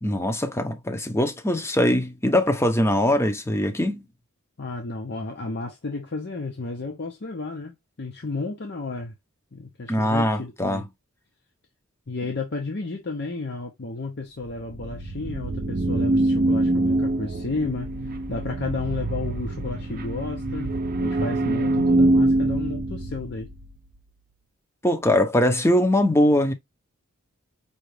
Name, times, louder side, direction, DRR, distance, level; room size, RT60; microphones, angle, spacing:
voice 1, 0.0-4.1 9.9-10.8 24.8-26.5, left 1 dB, 10° left, 0.7 m, -22 dB
voice 2, 4.6-9.1 9.5-10.8 12.1-23.5, left 3 dB, 50° left, 0.8 m, -32 dB
sound 1, 14.4-23.8, right 2 dB, 45° right, 0.6 m, -24 dB
5.6 x 2.4 x 3.2 m
head